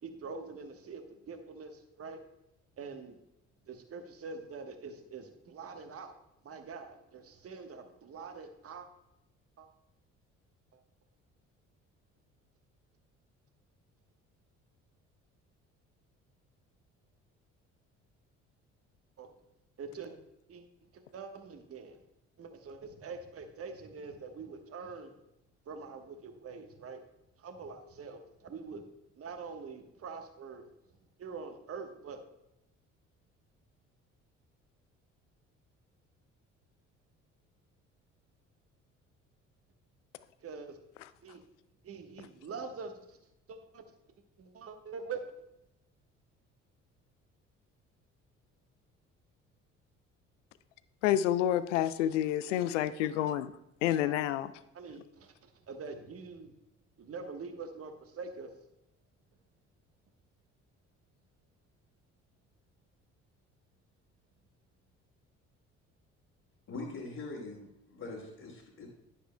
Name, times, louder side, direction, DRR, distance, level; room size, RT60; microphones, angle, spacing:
voice 1, 0.0-2.2 2.8-3.2 3.7-6.1 6.4-8.9 9.6-9.7 10.7-10.8 19.2-19.3 19.8-20.1 20.5-20.6 20.9-22.0 22.4-25.1 25.7-27.0 27.4-28.8 29.2-30.7 31.2-32.2 40.4-40.8 41.2-41.4 41.8-43.2 43.5-43.8 44.4-45.2 52.9-53.1 54.0-54.1 54.7-56.5 57.0-58.5, right 5 dB, 40° right, 6 dB, 1.2 m, -44 dB
voice 2, 51.0-53.5 53.8-54.5, left 11 dB, 80° left, 15 dB, 0.5 m, -29 dB
voice 3, 66.7-68.9, left 3 dB, 45° left, -7 dB, 2.3 m, -42 dB
10.0 x 10.0 x 2.2 m, 0.86 s
hypercardioid pair, 50°, 36 cm